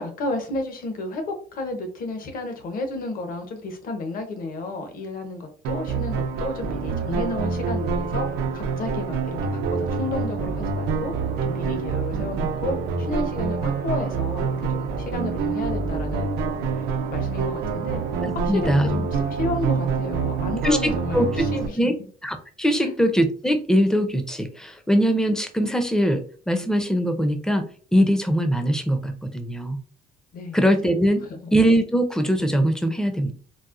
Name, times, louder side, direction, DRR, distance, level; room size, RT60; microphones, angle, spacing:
voice 1, 0.0-11.1 11.4-16.8 17.1-18.0 18.3-21.8 22.8-22.9 30.3-30.6 31.3-31.4, left 2 dB, 55° left, 5 dB, 0.8 m, -32 dB
sound 1, 5.6-21.7, right 5 dB, 75° right, 0.5 m, -26 dB
voice 2, 18.2-19.1 20.6-21.5 21.8-22.0 22.2-27.7 27.9-29.8 30.5-31.2 31.5-33.3, equal, 5° left, 7 dB, 0.5 m, -22 dB
4.1 x 2.1 x 2.4 m, 0.44 s
cardioid pair, 110°, 17 cm